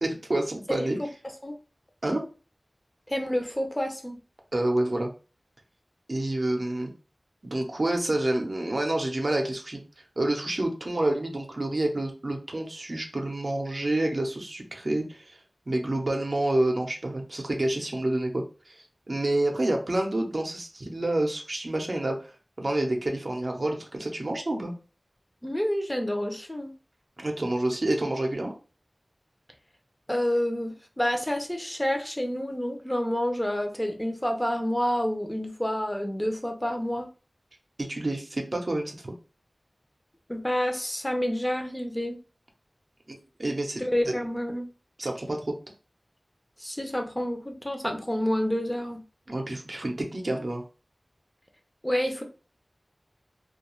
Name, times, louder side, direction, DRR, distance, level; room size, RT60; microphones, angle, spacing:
voice 1, 0.0-1.0 2.0-2.2 4.5-5.1 6.1-6.9 7.5-9.8 10.2-15.4 15.7-22.3 22.6-24.7 27.2-28.5 37.8-39.1 43.1-44.1 45.0-45.5 49.3-50.6, right 1 dB, 65° right, 2 dB, 0.6 m, -28 dB
voice 2, 0.7-1.1 1.4-1.5 3.1-4.2 25.4-26.7 30.1-37.1 40.3-42.2 43.8-44.7 46.6-49.0 51.8-52.2, equal, 15° left, 4 dB, 0.5 m, -28 dB
2.3 x 2.2 x 3.0 m, 0.34 s
wide cardioid pair, 45°, 0 cm